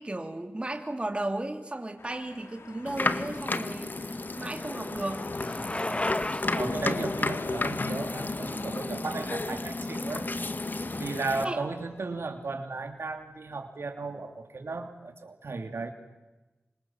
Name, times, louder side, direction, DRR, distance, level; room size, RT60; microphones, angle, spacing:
voice 1, 0.0-3.9 4.4-5.2 8.9-9.3 11.4-11.6, right 1 dB, 25° right, 5 dB, 3.1 m, -35 dB
sound 1, 2.0-12.3, left 4 dB, 85° left, 2.3 m, -47 dB
sound 2, 2.9-11.5, left 2 dB, 45° left, 1.6 m, -32 dB
Bicycle, 3.4-9.4, left 2 dB, 25° left, 1.2 m, -37 dB
voice 2, 6.5-10.2 11.0-15.9, right 3 dB, 75° right, 6 dB, 2.9 m, -35 dB
27.5 x 26.0 x 7.4 m, 1.1 s
wide cardioid pair, 60°, 4 cm